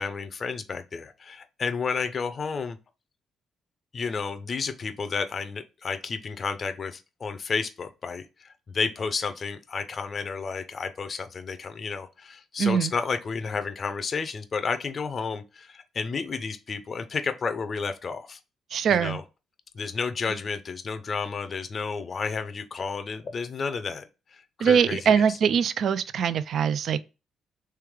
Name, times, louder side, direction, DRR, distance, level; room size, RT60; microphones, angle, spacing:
voice 1, 0.0-2.8 3.9-8.2 8.7-18.4 18.9-19.2 19.7-24.1 24.6-25.1, left 5 dB, 45° left, 0.5 m, -31 dB
voice 2, 12.6-12.9 18.7-19.2 24.6-27.0, right 7 dB, 65° right, 0.3 m, -22 dB
3.3 x 3.2 x 3.5 m
cardioid pair, 90°, 0 cm